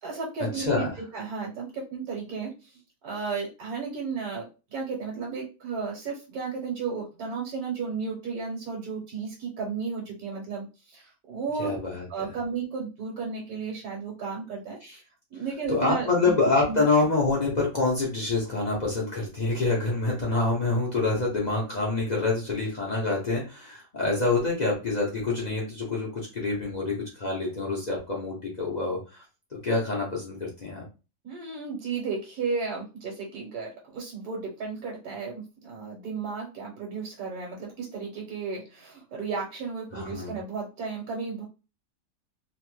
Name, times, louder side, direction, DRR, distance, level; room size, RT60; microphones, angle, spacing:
voice 1, 0.0-2.7 3.0-11.7 12.1-14.8 15.3-16.3 16.7-16.8 31.2-41.4, right 5 dB, 65° right, -2 dB, 1.3 m, -34 dB
voice 2, 0.5-0.9 11.6-12.3 14.8-15.0 15.7-29.2 29.5-30.8 39.9-40.4, left 3 dB, 50° left, -3 dB, 0.5 m, -26 dB
3.1 x 2.1 x 3.0 m, 0.31 s
omnidirectional pair, 1.8 m